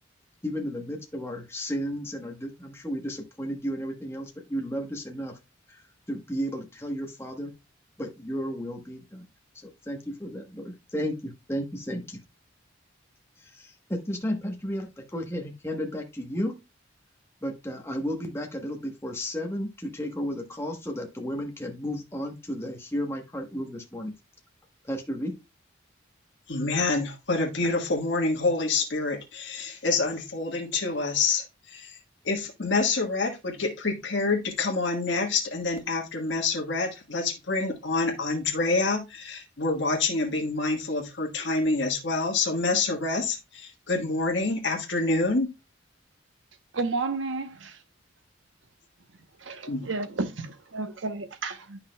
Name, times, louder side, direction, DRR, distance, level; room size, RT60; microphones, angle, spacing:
voice 1, 0.4-5.4 5.7-5.8 6.1-7.5 8.0-9.2 9.6-12.2 13.4-16.6 17.4-24.1 24.8-25.4, equal, 15° left, 1.1 m, -33 dB
voice 2, 26.5-32.0 32.2-45.5 49.7-49.9, left 3 dB, 60° left, 1.4 m, -27 dB
voice 3, 46.7-47.8 49.4-51.8, right 3 dB, 70° right, 0.9 m, -32 dB
9.5 x 5.7 x 2.2 m
head